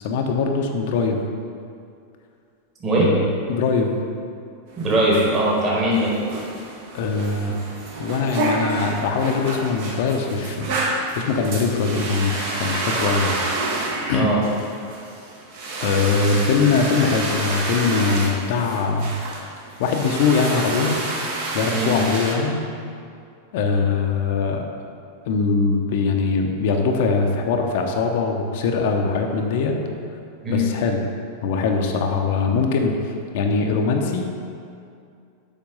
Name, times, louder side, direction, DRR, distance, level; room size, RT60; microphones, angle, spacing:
voice 1, 0.0-1.2 3.0-3.9 6.9-7.6 8.0-10.8 11.1-13.4 14.1-14.3 15.8-19.2 19.8-21.0 21.5-22.6 23.5-24.6 25.3-29.7 30.5-31.0 31.4-34.3, left 4 dB, 50° left, 3 dB, 0.7 m, -22 dB
voice 2, 2.8-3.1 4.8-6.1 14.1-14.4 21.7-22.0 30.4-30.7, right 1 dB, 25° right, -4 dB, 1.8 m, -20 dB
sound 1, 4.7-22.4, right 2 dB, 50° right, 1.2 m, -29 dB
7.2 x 4.6 x 5.3 m, 2.4 s
figure-of-eight pair, 90°, 0 cm